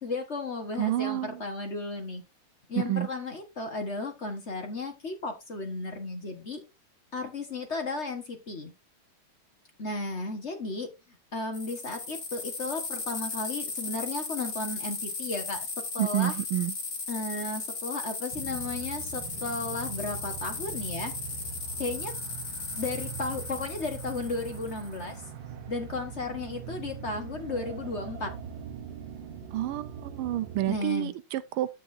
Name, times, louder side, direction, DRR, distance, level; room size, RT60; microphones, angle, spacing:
voice 1, 0.0-2.2 2.7-6.6 7.1-8.7 9.8-10.9 11.3-15.6 15.9-16.3 17.1-21.1 21.8-22.1 22.8-25.2 25.7-28.3 30.7-31.1, left 3 dB, 35° left, 1.5 m, -34 dB
voice 2, 0.8-1.4 2.8-3.1 16.0-16.7 29.5-31.7, right 14 dB, 85° right, 1.5 m, -29 dB
sound 1, 11.5-25.1, left 4 dB, 55° left, 2.5 m, -36 dB
sound 2, 18.3-30.8, right 7 dB, 65° right, 1.6 m, -41 dB
9.8 x 7.8 x 2.6 m
omnidirectional pair, 2.3 m